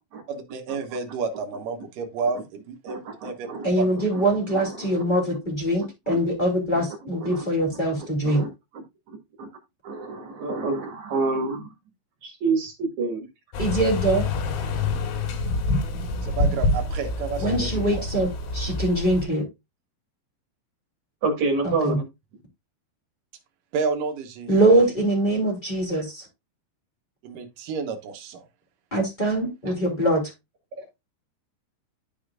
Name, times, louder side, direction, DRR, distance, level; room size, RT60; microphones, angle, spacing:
voice 1, 0.3-2.4 2.7-3.5 3.8-4.0 16.2-18.0 23.7-24.5 27.2-28.5, right 5 dB, 75° right, 1.9 m, -30 dB
voice 2, 2.9-3.7 4.0-4.2 4.5-5.0 6.1-6.2 6.7-6.9 7.2-7.5 8.2-8.5 8.7-8.8 9.1-9.5 9.8-11.7 12.2-13.3 21.2-22.1 29.7-29.8 30.8-30.9, right 3 dB, 55° right, 2.3 m, -28 dB
voice 3, 3.6-8.5 13.6-14.3 17.4-19.4 21.8-22.0 24.5-26.2 28.9-30.3, right 1 dB, 15° left, 1.7 m, -23 dB
sound 1, 13.5-19.3, left 2 dB, 80° left, 4.3 m, -26 dB
13.0 x 5.0 x 2.4 m
omnidirectional pair, 5.6 m